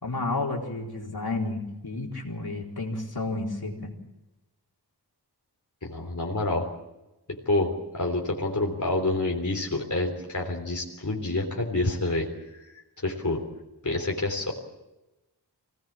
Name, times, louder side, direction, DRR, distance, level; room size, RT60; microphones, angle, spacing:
voice 1, 0.0-3.9, left 2 dB, 65° left, -1 dB, 4.2 m, -31 dB
voice 2, 5.8-6.7 7.5-12.3 13.0-13.4 13.8-14.5, left 2 dB, 45° left, 0 dB, 3.5 m, -27 dB
25.0 x 18.5 x 7.5 m, 1.0 s
wide cardioid pair, 55°, 41 cm